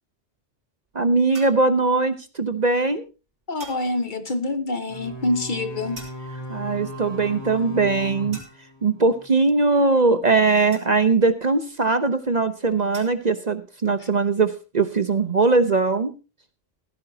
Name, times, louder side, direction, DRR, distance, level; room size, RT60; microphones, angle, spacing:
voice 1, 0.9-3.0 6.5-8.4 8.8-16.1, right 3 dB, 40° right, 0.9 m, -20 dB
sound 1, 1.3-1.7 3.6-4.0 5.9-6.5 8.3-8.8 10.7-11.3 12.9-13.3, right 2 dB, 80° right, 4.0 m, -44 dB
voice 2, 3.5-6.0 14.0-14.1, left 2 dB, 45° left, 1.2 m, -26 dB
sound 2, 4.9-9.4, equal, 20° left, 2.7 m, -37 dB
16.0 x 14.0 x 2.8 m
omnidirectional pair, 1.2 m